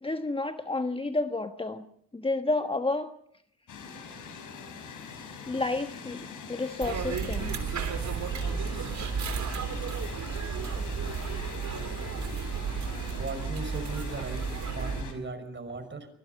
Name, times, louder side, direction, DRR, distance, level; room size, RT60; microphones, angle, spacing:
voice 1, 0.0-1.8 2.1-3.1 5.5-7.6, left 2 dB, 15° left, 8 dB, 1.3 m, -30 dB
sound 1, 3.7-15.1, left 5 dB, 60° left, 5.5 m, -43 dB
sound 2, 6.8-15.0, right 6 dB, 50° right, 3.5 m, -33 dB
voice 2, 13.2-14.5 14.7-16.1, right 3 dB, 30° right, 10 dB, 5.7 m, -37 dB
25.0 x 21.0 x 5.4 m, 0.69 s
hypercardioid pair, 60°, 36 cm